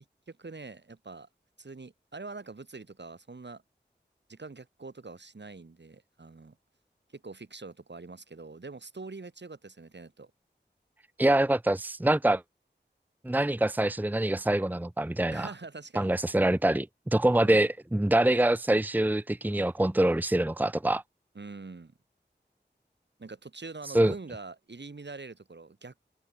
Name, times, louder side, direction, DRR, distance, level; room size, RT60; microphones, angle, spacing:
voice 1, 0.3-1.3 1.6-3.6 4.3-6.6 7.1-10.3 15.3-16.1 17.3-17.6 21.3-21.9 23.2-26.1, right 3 dB, 70° right, 4.3 m, -44 dB
voice 2, 11.2-12.4 13.2-15.5 16.0-21.0 23.9-24.1, right 1 dB, 10° right, 0.7 m, -25 dB
open air
wide cardioid pair, 55°, 19 cm